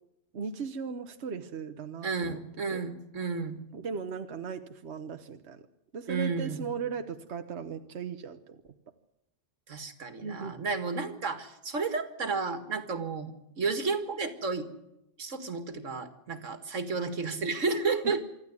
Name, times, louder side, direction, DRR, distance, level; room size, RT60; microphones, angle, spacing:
voice 1, 0.3-2.4 2.7-2.8 3.7-5.6 5.9-8.6 10.2-10.6 18.0-18.2, right 5 dB, 65° right, 7 dB, 1.3 m, -37 dB
voice 2, 2.0-3.6 6.1-6.7 9.7-14.7 15.2-18.3, right 4 dB, 85° right, 9 dB, 2.2 m, -32 dB
25.5 x 13.5 x 9.6 m, 0.86 s
omnidirectional pair, 1.3 m